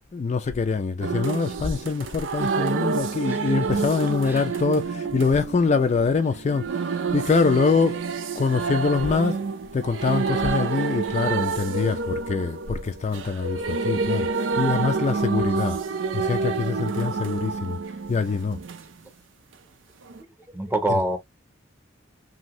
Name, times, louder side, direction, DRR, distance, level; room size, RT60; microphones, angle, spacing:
voice 1, 0.1-8.0 8.4-9.4 9.7-14.3 14.6-15.8 16.1-17.8 18.1-18.6 20.9-21.0, left 4 dB, 35° left, 0.3 m, -24 dB
sound 1, 1.0-18.8 20.1-20.2, right 4 dB, 85° right, 0.5 m, -28 dB
voice 2, 3.2-3.9 4.2-4.5 16.8-16.9 20.5-21.2, right 1 dB, 10° right, 0.7 m, -27 dB
2.7 x 2.6 x 2.9 m
head